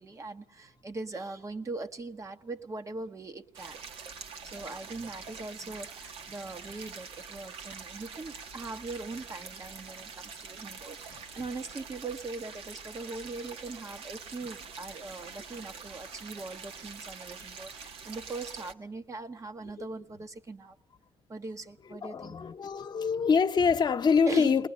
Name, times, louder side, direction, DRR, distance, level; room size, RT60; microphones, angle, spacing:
voice 1, 0.0-3.8 4.4-20.8 21.3-22.4 24.3-24.7, right 3 dB, 35° right, 1.1 m, -41 dB
sound 1, 3.5-18.7, right 5 dB, 80° right, 1.4 m, -45 dB
voice 2, 21.9-24.7, left 5 dB, 50° left, 1.0 m, -25 dB
21.0 x 19.5 x 9.7 m
cardioid pair, 85°, 10 cm